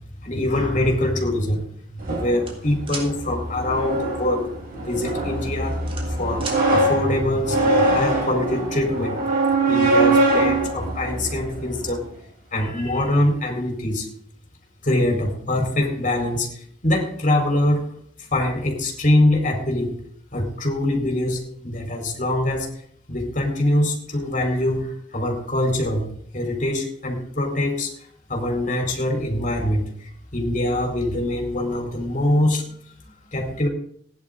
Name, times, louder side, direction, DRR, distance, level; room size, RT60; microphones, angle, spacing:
voice 1, 0.2-1.6 1.9-5.8 6.1-9.2 9.7-12.0 12.5-14.1 14.8-17.8 18.2-20.0 20.3-22.7 23.1-26.1 26.3-27.9 28.3-32.6 33.0-33.7, left 1 dB, 45° left, 1 dB, 4.3 m, -23 dB
sound 1, 2.0-12.0, right 2 dB, 50° right, 4.8 m, -23 dB
sound 2, 2.4-3.1 4.7-5.0 5.4-6.6, right 4 dB, 30° right, 3.3 m, -34 dB
16.5 x 11.0 x 3.9 m, 0.64 s
head